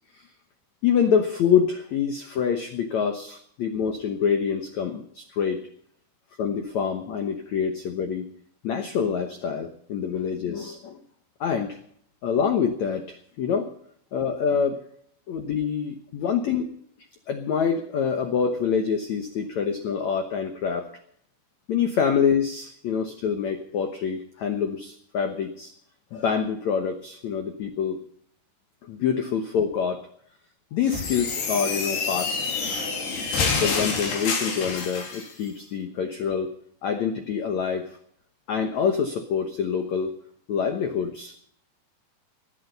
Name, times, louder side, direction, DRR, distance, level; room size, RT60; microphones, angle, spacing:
voice 1, 0.8-5.6 6.4-8.3 8.6-11.0 11.4-11.8 12.2-13.0 13.4-13.7 14.1-14.8 15.3-16.7 17.3-20.9 21.7-25.7 26.1-28.0 28.9-30.1 30.7-32.4 33.6-36.5 36.8-38.0 38.5-40.1 40.5-41.3, left 7 dB, 85° left, 7 dB, 1.6 m, -26 dB
sound 1, 30.8-35.3, left 4 dB, 70° left, 4.8 m, -27 dB
19.0 x 10.5 x 5.4 m, 0.65 s
omnidirectional pair, 5.1 m